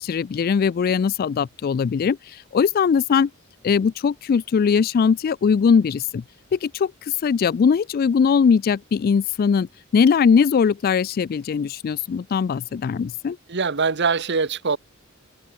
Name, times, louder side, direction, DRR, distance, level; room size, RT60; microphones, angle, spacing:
voice 1, 0.0-2.2 2.5-3.3 3.6-6.2 6.5-6.9 7.2-9.7 9.9-13.4, left 6 dB, 45° left, 0.3 m, -20 dB
voice 2, 13.5-14.8, right 5 dB, 55° right, 1.2 m, -22 dB
head